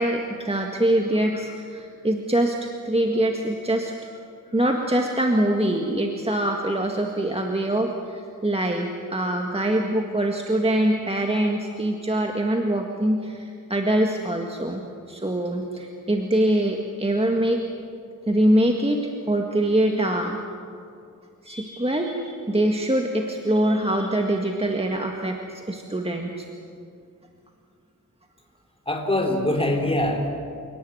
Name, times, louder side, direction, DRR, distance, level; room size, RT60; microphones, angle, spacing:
voice 1, 0.0-4.1 4.5-14.8 15.1-17.6 18.3-20.4 21.4-26.5, right 1 dB, 15° right, 2 dB, 1.9 m, -24 dB
voice 2, 28.9-30.3, left 1 dB, 15° left, 2 dB, 3.8 m, -23 dB
29.0 x 18.5 x 9.5 m, 2.4 s
wide cardioid pair, 85°, 34 cm